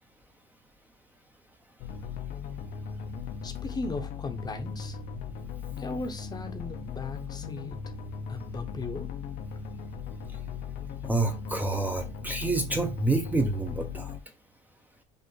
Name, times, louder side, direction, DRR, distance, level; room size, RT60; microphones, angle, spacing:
sound 1, 1.8-14.2, left 6 dB, 70° left, 0.7 m, -38 dB
voice 1, 3.4-5.0 5.8-7.9 8.3-9.1, left 3 dB, 25° left, 0.9 m, -37 dB
voice 2, 11.0-14.1, right 2 dB, 10° right, 0.7 m, -28 dB
5.3 x 2.5 x 3.9 m
cardioid pair, 115°, 16 cm